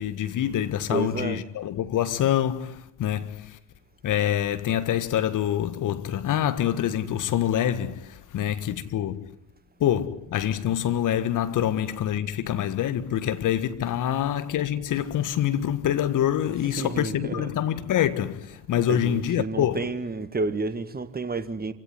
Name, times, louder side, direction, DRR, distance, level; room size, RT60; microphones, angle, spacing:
voice 1, 0.0-3.6 4.0-9.3 9.8-19.9, left 10 dB, 45° left, 1.6 m, -26 dB
voice 2, 0.9-1.4 16.5-17.6 18.9-21.7, right 3 dB, 20° right, 1.8 m, -31 dB
27.0 x 17.0 x 9.6 m
figure-of-eight pair, 60°, 43 cm